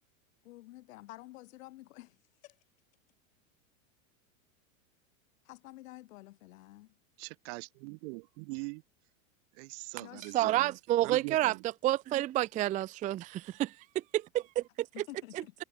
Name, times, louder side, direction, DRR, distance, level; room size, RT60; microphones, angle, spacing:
voice 1, 0.4-2.2 2.4-2.6 5.4-7.0 10.0-10.5 12.5-12.7 14.9-15.5, left 18 dB, 70° left, 7.7 m, -50 dB
voice 2, 7.2-8.8 9.6-10.8 11.0-11.6, right 34 dB, 55° right, 1.9 m, -42 dB
voice 3, 10.3-11.5 11.8-13.7 14.1-14.6, right 14 dB, 20° right, 0.4 m, -29 dB
supercardioid pair, 120°, 41 cm